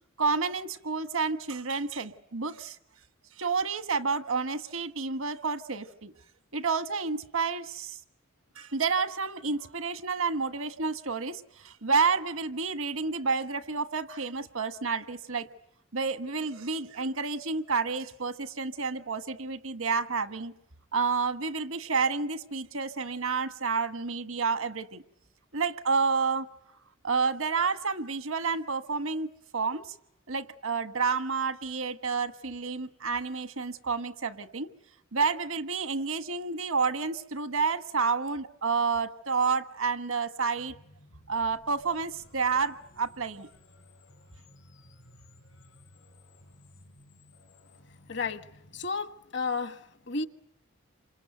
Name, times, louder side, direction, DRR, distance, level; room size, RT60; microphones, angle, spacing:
voice 1, 0.2-2.8 3.4-6.1 6.5-8.0 8.5-15.5 15.9-20.5 20.9-25.0 25.5-26.5 27.0-29.3 29.5-30.0 30.3-34.7 35.1-40.7 41.3-43.5, right 4 dB, 85° right, 1.4 m, -30 dB
sound 1, 40.6-48.9, left 1 dB, 75° left, 4.4 m, -57 dB
voice 2, 48.1-48.5 48.7-50.3, left 4 dB, 55° left, 1.3 m, -32 dB
28.5 x 26.5 x 7.9 m
head